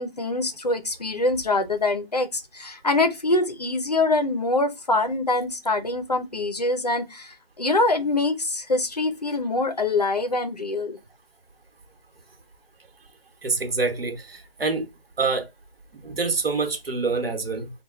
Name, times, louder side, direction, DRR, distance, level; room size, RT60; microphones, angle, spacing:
voice 1, 0.0-11.0, left 2 dB, 45° left, 0.5 m, -24 dB
voice 2, 13.4-14.9 15.2-15.5 15.9-17.7, right 4 dB, 80° right, 1.1 m, -26 dB
3.1 x 2.2 x 3.6 m
figure-of-eight pair, 175°, 29 cm